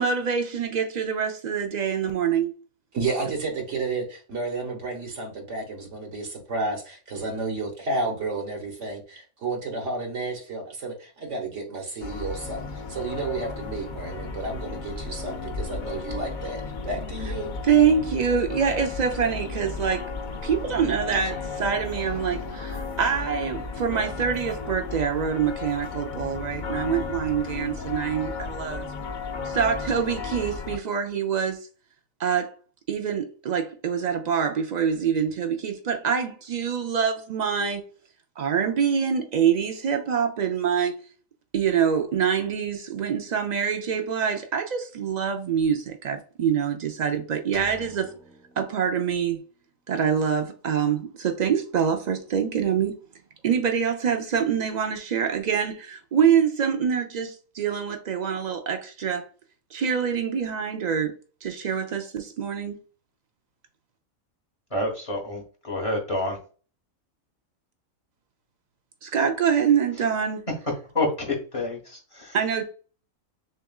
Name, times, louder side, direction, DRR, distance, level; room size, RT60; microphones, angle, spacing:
voice 1, 0.0-2.5 17.6-20.1 20.4-28.9 29.4-31.6 32.2-32.6 32.9-37.8 38.4-41.0 41.5-48.1 48.6-49.4 49.9-53.0 53.4-59.3 59.7-61.1 61.4-62.8 69.0-70.4 72.3-72.6, right 7 dB, 85° right, 0.3 m, -25 dB
voice 2, 2.9-17.5, right 3 dB, 60° right, 1.4 m, -31 dB
sound 1, 12.0-30.8, left 4 dB, 60° left, 0.5 m, -34 dB
sound 2, 47.5-49.5, right 3 dB, 5° left, 0.4 m, -48 dB
voice 3, 64.7-65.4 65.7-66.3 70.9-72.4, left 2 dB, 25° left, 1.3 m, -28 dB
6.5 x 2.4 x 2.3 m
omnidirectional pair, 1.5 m